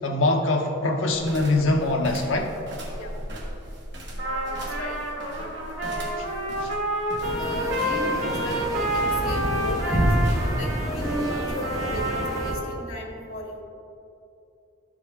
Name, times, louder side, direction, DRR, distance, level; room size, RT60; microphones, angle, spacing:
voice 1, 0.0-2.5 6.6-6.7, left 2 dB, 75° left, 2 dB, 0.9 m, -23 dB
sound 1, 1.1-12.4, equal, 55° right, 1.4 m, -39 dB
voice 2, 4.1-5.0 5.3-5.5 5.8-6.2 7.4-10.1 10.6-13.6, left 1 dB, 90° left, 0 dB, 1.7 m, -36 dB
Trumpet, 4.2-12.7, right 1 dB, 80° right, 2.0 m, -29 dB
sound 2, 7.2-12.5, equal, 15° right, 1.1 m, -28 dB
12.5 x 5.1 x 3.6 m, 2.7 s
head